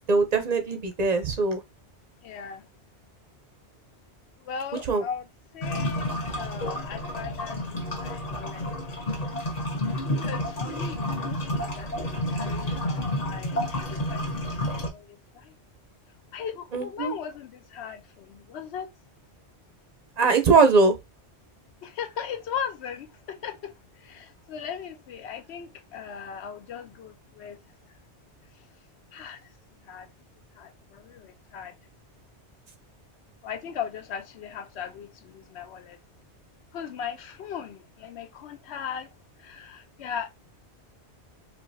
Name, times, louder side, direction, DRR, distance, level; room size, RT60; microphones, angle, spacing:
voice 1, 0.1-1.6 4.9-5.0 16.7-17.1 20.2-20.9, right 4 dB, 45° right, 0.6 m, -21 dB
voice 2, 2.2-2.7 4.4-5.3 5.5-6.1 6.3-8.8 9.9-15.5 16.3-18.9 21.8-27.6 28.6-28.7 29.1-29.5 29.8-30.1 30.6-31.8 33.4-36.0 36.7-39.1 39.4-40.4, left 7 dB, 75° left, 0.9 m, -38 dB
sound 1, 5.6-14.9, left 1 dB, 40° left, 0.9 m, -30 dB
4.5 x 2.2 x 2.6 m
omnidirectional pair, 1.2 m